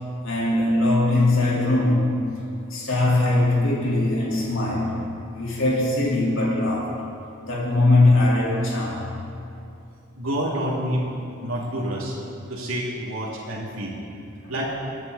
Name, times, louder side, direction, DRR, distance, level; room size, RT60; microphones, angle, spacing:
voice 1, 0.2-2.3 2.7-5.0 5.3-7.0 7.4-9.2 14.4-14.5, left 2 dB, 65° left, -6 dB, 3.8 m, -21 dB
voice 2, 10.2-11.0 11.4-12.2 12.5-14.0 14.5-14.6, right 1 dB, 70° right, -5 dB, 2.7 m, -28 dB
23.5 x 9.5 x 4.2 m, 2.6 s
head